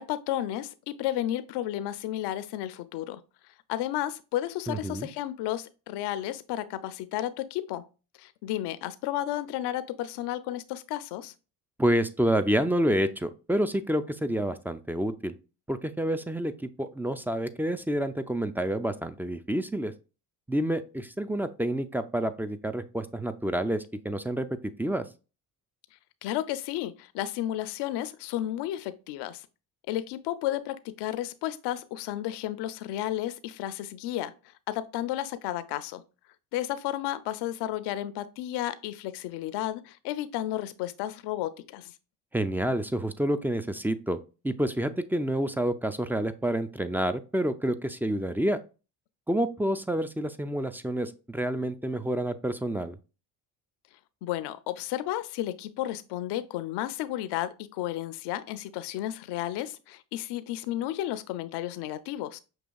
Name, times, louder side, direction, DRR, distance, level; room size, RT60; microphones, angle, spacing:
voice 1, 0.0-3.2 3.7-7.9 8.2-11.3 26.2-29.5 29.9-34.3 34.7-36.0 36.5-41.9 54.2-62.4, left 13 dB, 75° left, 0.6 m, -32 dB
voice 2, 4.7-5.1 11.8-15.3 15.7-19.9 20.5-24.5 24.8-25.0 42.3-44.2 44.4-48.6 49.3-53.0, right 1 dB, 5° right, 0.3 m, -28 dB
6.2 x 2.8 x 2.3 m
supercardioid pair, 60°, 42 cm